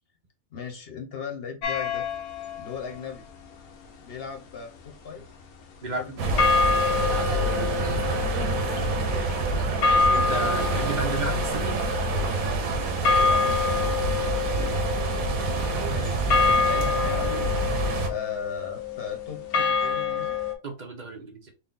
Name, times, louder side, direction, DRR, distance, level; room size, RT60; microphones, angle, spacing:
voice 1, 0.5-2.1 2.6-3.3 4.0-5.2 5.8-6.5 8.5-9.0 13.2-13.7 15.9-17.3 18.1-20.4, left 6 dB, 45° left, 3 dB, 1.0 m, -37 dB
sound 1, 1.6-2.7 6.4-20.5, left 5 dB, 85° left, 1.2 m, -27 dB
sound 2, 6.2-18.1, right 3 dB, 75° right, 1.3 m, -27 dB
voice 2, 9.8-11.8 14.1-14.5 20.6-21.5, right 3 dB, 40° right, 3 dB, 0.8 m, -34 dB
4.1 x 2.3 x 3.9 m, 0.30 s
omnidirectional pair, 1.5 m